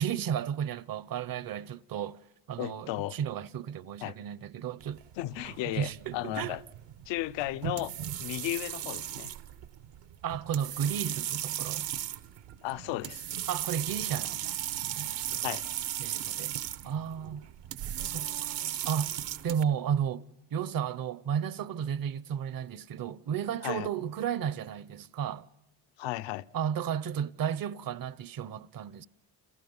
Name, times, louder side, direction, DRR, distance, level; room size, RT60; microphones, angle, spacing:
voice 1, 0.0-2.2 2.5-5.0 5.7-6.6 10.2-11.9 13.5-14.6 14.8-15.4 16.0-16.5 16.8-17.4 18.0-18.6 18.8-19.1 19.4-20.3 20.5-25.5 26.5-29.1, right 8 dB, 50° right, 0.9 m, -33 dB
voice 2, 2.6-3.1 4.0-4.1 5.2-6.6 7.1-7.9 8.2-9.3 12.6-13.2 15.4-15.6 23.6-23.9 26.0-26.5, left 16 dB, 80° left, 0.8 m, -34 dB
sound 1, 4.8-19.6, right 12 dB, 70° right, 1.3 m, -37 dB
30.0 x 28.0 x 5.5 m
supercardioid pair, 85°, 44 cm